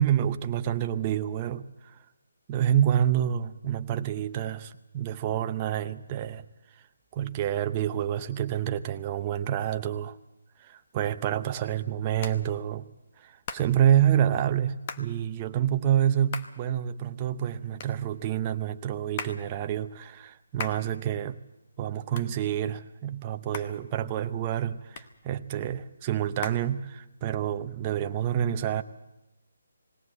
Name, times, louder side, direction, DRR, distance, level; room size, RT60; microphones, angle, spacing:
voice 1, 0.0-2.0 2.5-6.4 7.1-10.2 10.6-12.9 13.2-21.4 21.8-28.8, right 10 dB, 20° right, 0.7 m, -28 dB
Hands, 10.7-27.4, left 6 dB, 30° left, 1.0 m, -44 dB
19.5 x 17.0 x 8.0 m
hypercardioid pair, 170°, 0 cm